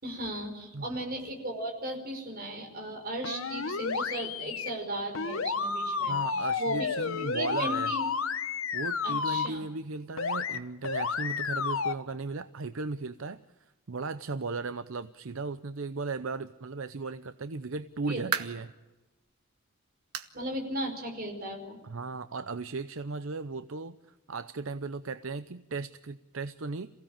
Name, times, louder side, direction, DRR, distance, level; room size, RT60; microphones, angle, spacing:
voice 1, 0.0-6.9 7.2-8.0 9.0-9.6 18.1-18.2 20.3-21.8, right 1 dB, 45° right, 3 dB, 5.2 m, -36 dB
sound 1, 3.2-4.7 5.2-9.5 10.2-10.6 10.8-11.9, left 5 dB, 65° left, 1.2 m, -31 dB
voice 2, 6.1-7.9 8.7-18.7 21.8-24.0 24.3-26.9, right 3 dB, 65° right, 12 dB, 0.7 m, -36 dB
sound 2, 17.9-18.7 19.2-19.4 20.1-20.4 20.7-20.8 21.3-21.4 22.5-22.6, right 7 dB, 90° right, 1.6 m, -35 dB
27.5 x 16.5 x 8.9 m, 1.1 s
head